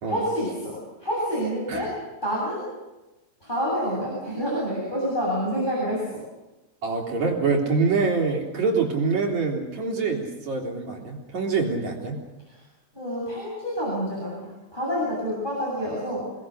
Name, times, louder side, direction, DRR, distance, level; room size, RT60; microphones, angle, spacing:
voice 1, 0.1-1.9 2.2-2.7 3.4-6.2 12.9-14.5 14.7-16.2, equal, 15° left, -5 dB, 7.7 m, -28 dB
voice 2, 6.8-12.2, right 4 dB, 55° right, 0 dB, 4.8 m, -25 dB
29.5 x 20.0 x 6.6 m, 1.1 s
omnidirectional pair, 4.0 m